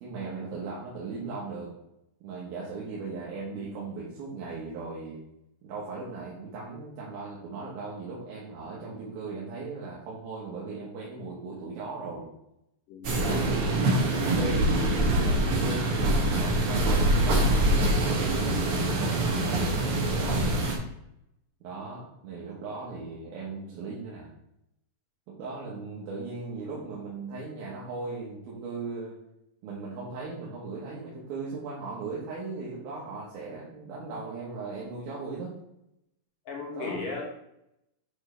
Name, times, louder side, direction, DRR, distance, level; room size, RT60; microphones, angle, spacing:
voice 1, 0.0-1.7 2.2-5.2 5.6-12.3 13.2-14.7 15.2-20.5 21.6-24.3 25.3-29.2 29.6-35.5 36.7-37.1, right 3 dB, 85° right, -5 dB, 3.1 m, -38 dB
voice 2, 12.9-13.3 36.5-37.2, left 4 dB, 70° left, -1 dB, 3.1 m, -36 dB
sound 1, 13.0-20.8, right 1 dB, 65° right, 1.4 m, -24 dB
8.8 x 4.9 x 3.3 m, 0.83 s
omnidirectional pair, 4.2 m